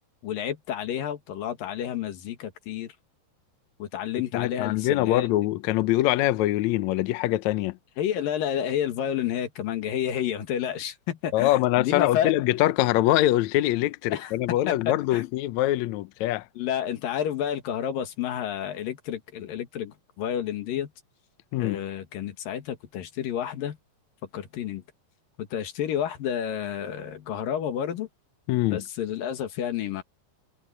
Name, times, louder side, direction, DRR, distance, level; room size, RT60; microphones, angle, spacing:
voice 1, 0.2-2.9 3.8-5.3 8.0-12.3 14.1-15.3 16.6-20.9 21.6-23.8 24.3-24.8 25.4-28.1 28.7-30.0, left 9 dB, 90° left, 3.4 m, -30 dB
voice 2, 4.3-7.8 11.3-16.5 21.5-21.8 28.5-28.8, left 15 dB, 75° left, 1.8 m, -24 dB
omnidirectional pair, 3.8 m